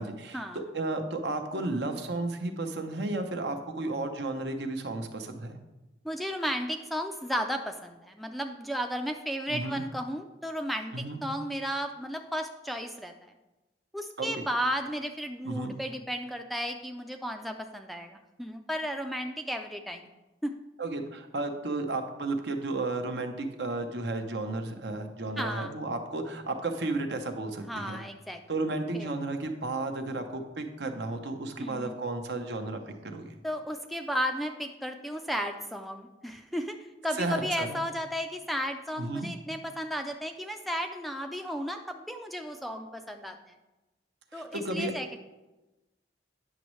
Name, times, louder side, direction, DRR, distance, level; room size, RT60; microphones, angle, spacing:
voice 1, 0.0-5.6 9.5-9.8 10.9-11.2 14.2-14.3 15.4-15.8 20.8-28.0 28.5-33.4 37.2-37.8 39.0-39.3 44.3-44.9, right 2 dB, 70° right, 6 dB, 0.8 m, -33 dB
voice 2, 6.0-13.3 13.9-20.1 20.4-20.5 25.4-25.7 27.7-28.4 28.9-29.1 31.6-31.9 33.4-36.8 37.0-43.5 44.3-45.2, equal, ahead, 4 dB, 0.3 m, -34 dB
9.2 x 6.1 x 3.1 m, 1.0 s
head